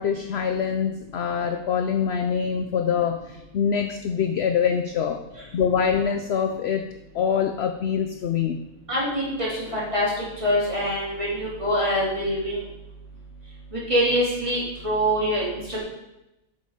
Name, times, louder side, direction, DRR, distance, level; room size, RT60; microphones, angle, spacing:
voice 1, 0.0-5.2 5.5-6.9 7.1-8.6, left 7 dB, 60° left, 7 dB, 0.7 m, -24 dB
voice 2, 8.9-10.1 10.4-12.6 13.7-15.8, equal, 20° right, -6 dB, 3.4 m, -24 dB
9.7 x 6.7 x 4.9 m, 0.92 s
omnidirectional pair, 1.5 m